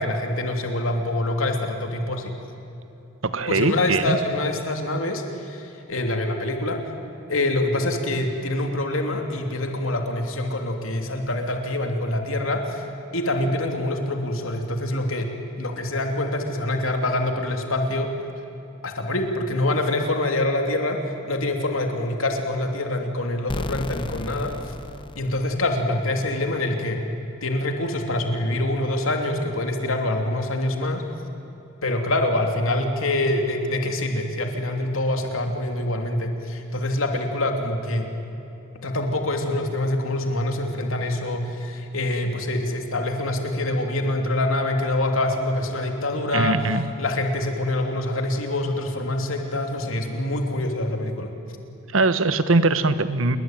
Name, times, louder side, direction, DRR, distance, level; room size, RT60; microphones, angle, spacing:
voice 1, 0.0-2.3 3.5-6.8 7.3-12.8 13.1-15.3 15.6-18.1 18.8-24.7 25.2-27.0 27.4-31.1 31.8-38.1 38.8-46.6 47.0-51.3, left 1 dB, 85° left, 4 dB, 3.0 m, -25 dB
voice 2, 3.2-4.2 46.3-46.9 51.9-53.4, right 3 dB, 75° right, 12 dB, 1.4 m, -21 dB
sound 1, 23.5-26.2, left 2 dB, 25° left, 0.7 m, -34 dB
28.0 x 22.5 x 9.2 m, 2.9 s
head